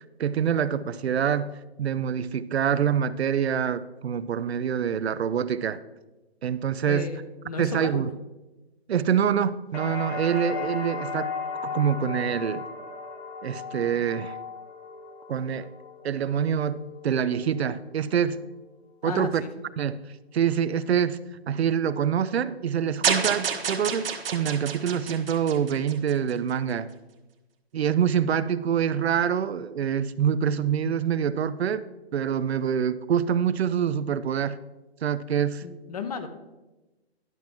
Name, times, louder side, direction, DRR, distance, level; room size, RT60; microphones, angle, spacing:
voice 1, 0.2-5.8 6.4-7.1 7.6-8.1 8.9-11.3 11.6-12.7 13.4-14.4 15.3-15.7 16.0-18.4 19.0-19.4 19.8-20.0 20.3-21.2 21.5-26.9 27.7-31.8 32.1-34.6 35.0-35.6, right 8 dB, 75° right, 15 dB, 0.5 m, -25 dB
voice 2, 6.8-8.0 19.0-19.5 35.6-36.3, left 5 dB, 35° left, 9 dB, 0.7 m, -34 dB
sound 1, 9.7-17.6 18.0-18.7, left 4 dB, 80° left, 3.1 m, -36 dB
sound 2, 23.0-26.3, right 6 dB, 60° right, 1.2 m, -28 dB
10.5 x 5.8 x 3.6 m, 1.1 s
hypercardioid pair, 155°, 32 cm